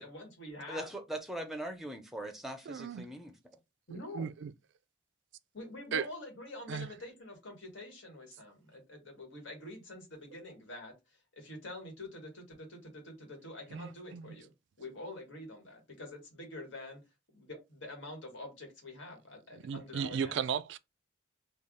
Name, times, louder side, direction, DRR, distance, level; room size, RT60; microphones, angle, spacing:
voice 1, 0.0-0.9 3.9-4.3 5.5-14.5 14.8-17.0 17.3-20.4, left 1 dB, 80° left, 1.6 m, -46 dB
voice 2, 0.7-3.3, right 1 dB, ahead, 0.5 m, -40 dB
voice 3, 2.7-3.1 3.9-4.5 5.9-6.1 6.7-6.9 13.7-14.4 19.5-20.8, right 7 dB, 70° right, 0.3 m, -36 dB
3.3 x 2.3 x 3.7 m
head